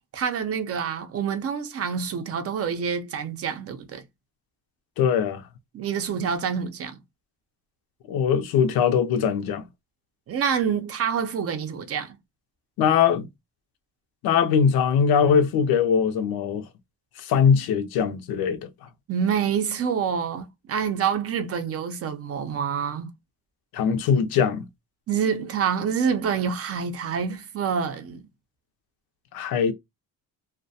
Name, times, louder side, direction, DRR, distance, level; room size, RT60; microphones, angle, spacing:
voice 1, 0.1-4.0 5.7-7.0 10.3-12.2 19.1-23.1 25.1-28.2, right 7 dB, 40° right, 0.5 m, -27 dB
voice 2, 5.0-5.4 8.1-9.7 12.8-13.3 14.2-16.7 17.2-18.7 23.7-24.7 29.3-29.7, left 7 dB, 80° left, 0.5 m, -21 dB
2.2 x 2.1 x 2.6 m
cardioid pair, 135°, 36 cm